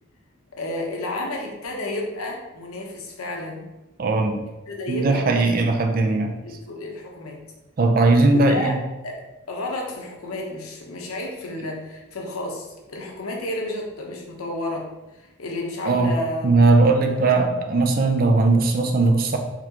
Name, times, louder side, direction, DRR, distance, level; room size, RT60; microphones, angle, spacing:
voice 1, 0.6-3.7 4.7-5.5 5.8-6.1 6.4-7.4 8.4-8.8 9.0-9.2 9.5-14.9 15.2-16.5 17.1-17.3, left 1 dB, 90° left, 0 dB, 0.8 m, -31 dB
voice 2, 4.0-4.4 4.9-6.3 7.8-8.8 15.9-16.2 16.4-19.4, right 3 dB, 40° right, 4 dB, 0.4 m, -19 dB
4.1 x 3.0 x 2.8 m, 1.0 s
head